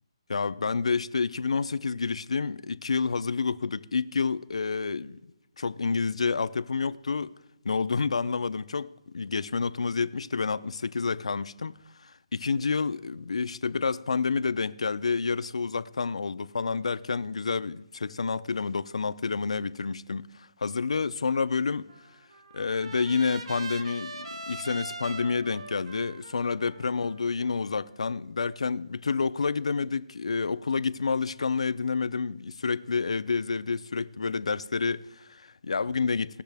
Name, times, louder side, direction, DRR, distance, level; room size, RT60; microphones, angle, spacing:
voice 1, 0.3-5.2 5.6-7.3 7.6-21.9 22.5-36.4, left 4 dB, 80° left, 0.5 m, -29 dB
Trumpet, 21.9-28.1, right 2 dB, 65° right, 1.3 m, -42 dB
19.0 x 6.5 x 3.4 m
hypercardioid pair, 180°, 3 cm